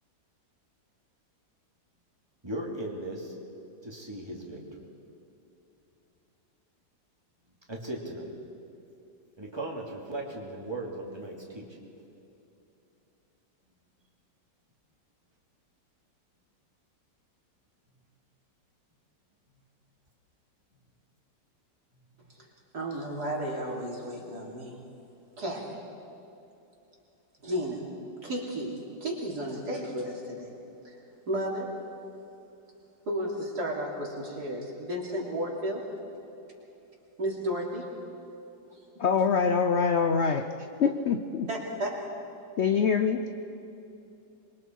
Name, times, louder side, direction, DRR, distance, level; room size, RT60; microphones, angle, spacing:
voice 1, 2.4-3.3 3.8-4.6 7.7-8.3 9.4-11.7, right 1 dB, 15° right, -1 dB, 2.7 m, -37 dB
voice 2, 22.7-24.8 25.4-25.8 27.4-27.8 28.2-30.5 31.3-31.8 33.1-35.8 37.2-37.9 41.5-42.0, equal, 60° right, -2 dB, 3.7 m, -33 dB
voice 3, 39.0-40.5 40.8-41.5 42.6-43.3, left 6 dB, 55° left, 7 dB, 0.8 m, -24 dB
26.5 x 22.5 x 4.7 m, 2.8 s
omnidirectional pair, 2.0 m